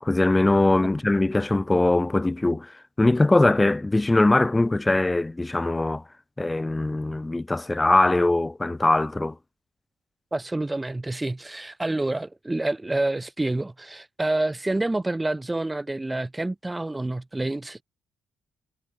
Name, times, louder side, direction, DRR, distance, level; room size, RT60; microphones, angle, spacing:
voice 1, 0.0-6.0 6.4-9.3, left 2 dB, 15° left, 7.9 m, -21 dB
voice 2, 10.3-17.8, right 2 dB, 15° right, 4.2 m, -28 dB
cardioid pair, 90°, 0 cm